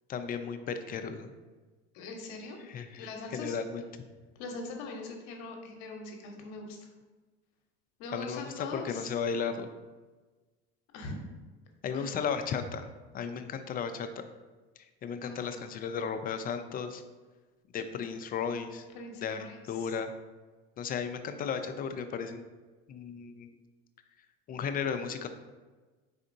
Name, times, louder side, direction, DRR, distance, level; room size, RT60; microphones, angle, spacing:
voice 1, 0.1-1.3 2.7-3.9 8.1-9.7 11.8-12.9 13.1-14.3 15.0-17.0 17.7-18.8 19.2-20.1 20.8-22.4 22.9-23.5 24.5-25.3, left 6 dB, 30° left, 8 dB, 0.4 m, -35 dB
voice 2, 1.9-2.6 2.9-3.6 4.4-6.9 8.0-9.1 10.9-11.2 11.9-12.2 15.2-15.8 18.9-19.9, left 3 dB, 70° left, 2 dB, 0.9 m, -42 dB
4.2 x 3.7 x 2.6 m, 1.3 s
supercardioid pair, 90°, 31 cm